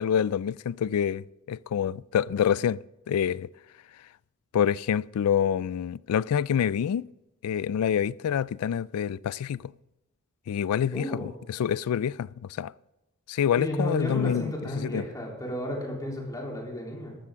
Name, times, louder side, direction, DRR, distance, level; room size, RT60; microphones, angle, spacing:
voice 1, 0.0-2.8 3.1-3.5 4.5-7.1 7.4-9.7 10.5-12.3 12.6-12.7 13.3-15.1, left 8 dB, 85° left, 0.3 m, -27 dB
voice 2, 10.9-11.3 13.6-17.2, left 1 dB, 15° left, 3.5 m, -32 dB
13.5 x 13.5 x 3.7 m
head